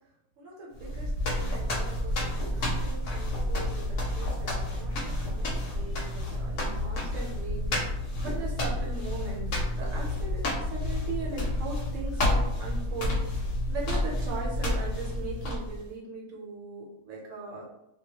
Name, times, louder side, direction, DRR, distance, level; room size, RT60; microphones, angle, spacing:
voice 1, 0.4-17.7, right 3 dB, 75° right, -3 dB, 1.0 m, -40 dB
sound 1, 0.8-15.9, left 1 dB, 75° left, 0.9 m, -30 dB
2.2 x 2.1 x 2.7 m, 0.89 s
omnidirectional pair, 1.4 m